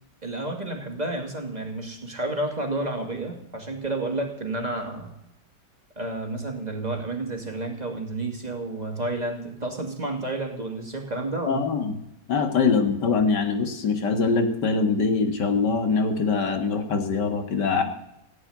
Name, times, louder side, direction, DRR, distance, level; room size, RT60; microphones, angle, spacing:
voice 1, 0.2-5.1 6.0-11.6, right 2 dB, 25° right, 2 dB, 2.5 m, -30 dB
voice 2, 11.5-12.0 12.3-17.8, left 4 dB, 80° left, 6 dB, 2.3 m, -23 dB
16.5 x 8.0 x 9.4 m, 0.83 s
omnidirectional pair, 1.8 m